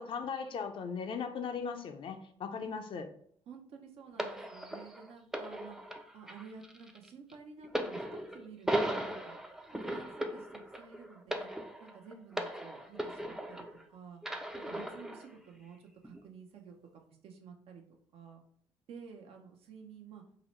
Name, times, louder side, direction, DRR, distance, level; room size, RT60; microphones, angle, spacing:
voice 1, 0.0-3.1, left 6 dB, 55° left, 0.4 m, -38 dB
voice 2, 3.5-5.8 6.1-9.4 9.8-11.5 11.8-14.2 14.7-17.8 18.1-18.4 18.9-20.2, right 6 dB, 70° right, 0.6 m, -51 dB
sound 1, 4.2-13.8 14.2-15.3 16.0-16.2, right 1 dB, 5° right, 0.4 m, -38 dB
3.7 x 2.1 x 3.0 m
cardioid pair, 80°, 10 cm